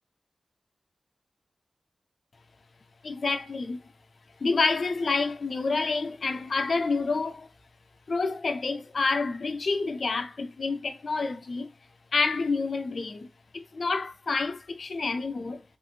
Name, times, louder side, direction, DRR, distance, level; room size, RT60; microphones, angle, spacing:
voice 1, 3.0-3.8 4.4-7.5 8.1-11.7 12.1-13.3 13.8-15.6, left 4 dB, 70° left, 0.5 m, -28 dB
3.0 x 2.8 x 2.4 m
cardioid pair, 45°, 0 cm